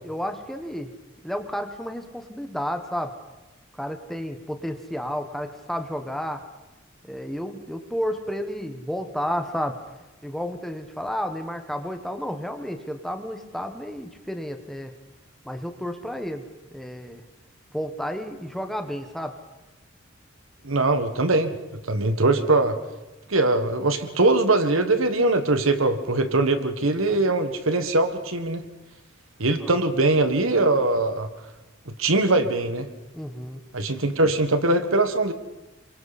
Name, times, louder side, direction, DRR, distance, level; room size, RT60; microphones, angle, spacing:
voice 1, 0.0-0.9 1.2-3.1 3.8-6.4 7.0-9.8 10.2-14.9 15.4-16.4 16.7-17.2 17.7-19.3 26.7-26.9 29.6-29.7 33.1-33.6, equal, ahead, 6 dB, 1.3 m, -31 dB
voice 2, 20.6-21.5 21.9-22.8 23.3-28.6 29.4-31.3 31.9-32.9 33.7-35.3, right 2 dB, 80° right, 9 dB, 1.6 m, -21 dB
27.5 x 24.0 x 4.3 m, 1.1 s
head